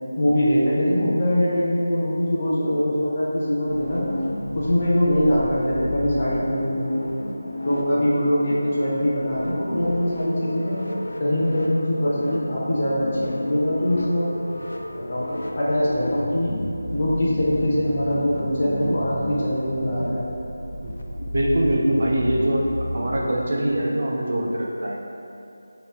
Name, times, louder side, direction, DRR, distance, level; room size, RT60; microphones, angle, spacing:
voice 1, 0.2-4.0 4.5-7.0 7.6-10.8 11.2-14.3 15.1-15.3 15.6-16.6 16.9-20.3, equal, 20° left, -9 dB, 0.6 m, -22 dB
sound 1, 3.7-23.2, left 1 dB, 70° left, 0.4 m, -32 dB
voice 2, 21.2-22.7 22.9-25.0, right 1 dB, 35° right, -3 dB, 0.3 m, -23 dB
3.0 x 2.8 x 4.5 m, 2.7 s
figure-of-eight pair, 180°, 0 cm